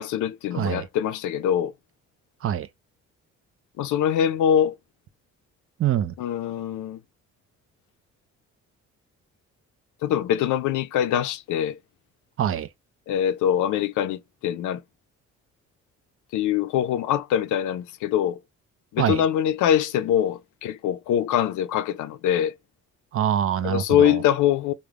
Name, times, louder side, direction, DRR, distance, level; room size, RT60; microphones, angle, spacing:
voice 1, 0.0-1.7 3.8-4.7 6.2-7.0 10.0-11.8 13.1-14.8 16.3-18.4 18.9-22.5 23.6-24.7, left 10 dB, 75° left, 0.5 m, -23 dB
voice 2, 0.5-0.9 2.4-2.7 5.8-6.1 12.4-12.7 19.0-19.2 23.1-24.2, right 10 dB, 45° right, 0.4 m, -24 dB
3.2 x 2.1 x 2.3 m
cardioid pair, 90°, 30 cm